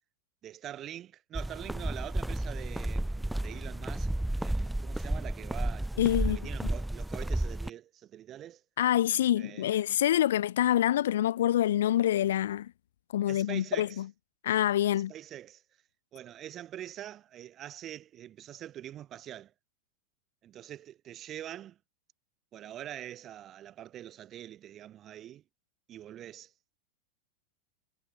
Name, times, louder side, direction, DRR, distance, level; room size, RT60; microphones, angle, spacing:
voice 1, 0.4-4.1 4.4-5.9 6.2-8.6 9.4-10.0 13.3-14.0 14.9-15.6 16.1-19.5 20.4-21.8 22.5-25.4 25.9-26.5, right 11 dB, 30° right, 5.7 m, -44 dB
sound 1, 1.3-7.7, right 1 dB, 5° right, 1.0 m, -32 dB
voice 2, 6.0-6.7 8.8-12.7 13.1-14.1 14.4-15.1, left 12 dB, 60° left, 1.3 m, -26 dB
figure-of-eight pair, 90°, 0 cm